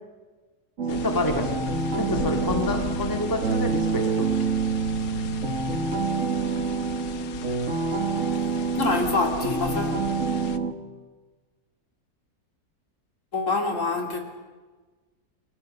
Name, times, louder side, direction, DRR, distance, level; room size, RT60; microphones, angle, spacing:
sound 1, 0.8-10.7, right 4 dB, 50° right, 2.0 m, -27 dB
sound 2, 0.9-10.6, left 7 dB, 90° left, 1.5 m, -37 dB
voice 1, 0.9-1.6 2.0-4.5, left 2 dB, 15° left, 4 dB, 2.0 m, -28 dB
voice 2, 8.8-10.0 13.3-14.2, left 3 dB, 50° left, 3 dB, 3.4 m, -26 dB
29.0 x 22.5 x 6.6 m, 1.3 s
omnidirectional pair, 1.6 m